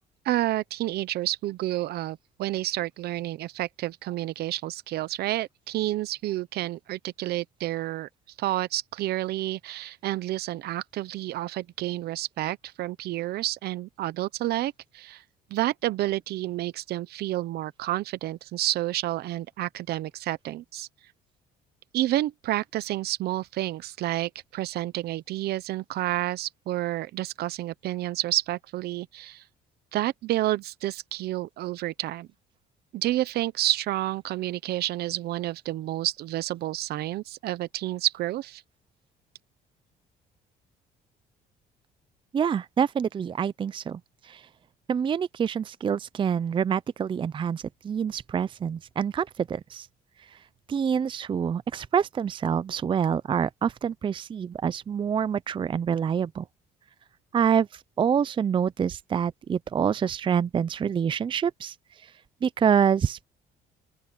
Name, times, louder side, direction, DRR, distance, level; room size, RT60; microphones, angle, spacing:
voice 1, 0.2-8.1 8.4-15.2 15.5-20.9 21.9-29.4 29.9-32.3 32.9-38.6, right 15 dB, 70° right, 0.9 m, -30 dB
voice 2, 42.3-44.0 44.3-44.4 44.9-49.9 50.7-56.4 57.3-57.7 58.0-61.7 62.4-63.2, right 7 dB, 30° right, 0.5 m, -26 dB
open air
cardioid pair, 110°, 17 cm